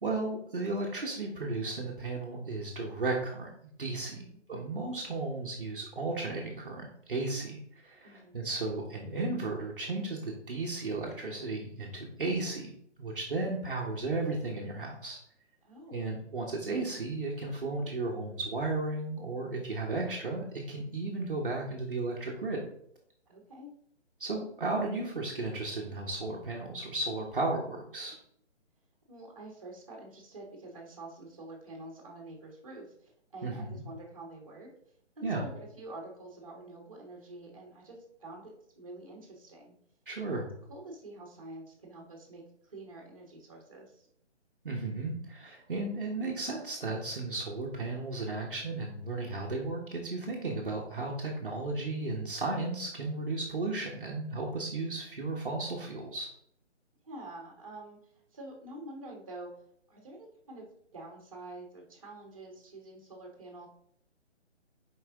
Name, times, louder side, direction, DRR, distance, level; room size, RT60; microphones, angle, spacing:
voice 1, 0.0-3.5 3.8-4.2 4.5-12.7 13.0-15.2 15.9-22.6 24.2-28.1 33.4-33.8 35.2-35.4 40.1-40.5 44.6-56.3, right 2 dB, 45° right, -1 dB, 1.1 m, -34 dB
voice 2, 8.0-8.4 15.6-16.0 23.3-23.7 29.1-34.7 35.2-39.8 40.2-40.4 40.7-44.1 57.0-58.0 58.3-59.5 59.9-60.7 60.9-63.7, right 2 dB, 30° right, 0 dB, 1.4 m, -47 dB
6.4 x 4.8 x 3.6 m, 0.68 s
hypercardioid pair, 180°, 36 cm